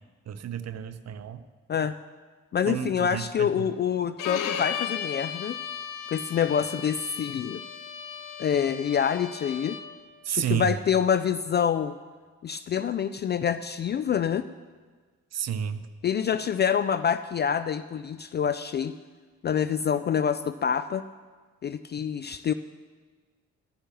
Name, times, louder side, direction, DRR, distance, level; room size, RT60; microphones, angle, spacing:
voice 1, 0.3-1.4 2.7-3.6 10.3-10.7 15.3-15.8, right 9 dB, 40° right, 12 dB, 0.8 m, -31 dB
voice 2, 2.5-5.6 6.1-7.6 8.4-9.8 10.3-12.0 12.4-14.5 16.0-18.9 19.4-21.0 21.6-22.5, left 8 dB, 30° left, 13 dB, 0.4 m, -26 dB
Bowed string instrument, 4.2-10.0, left 8 dB, 50° left, 0.9 m, -35 dB
15.0 x 14.5 x 3.0 m, 1.5 s
figure-of-eight pair, 40°, 40 cm